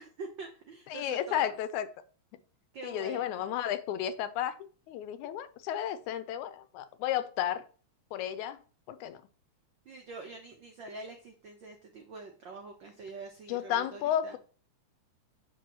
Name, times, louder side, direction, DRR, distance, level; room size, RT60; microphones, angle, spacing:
voice 1, 0.0-1.5 2.7-3.5 9.8-14.4, right 3 dB, 90° right, 1.0 m, -45 dB
voice 2, 0.9-1.9 2.8-4.6 4.9-7.6 8.1-8.6 8.9-9.2 13.5-14.4, left 11 dB, 90° left, 2.1 m, -32 dB
8.1 x 5.8 x 2.9 m
omnidirectional pair, 3.4 m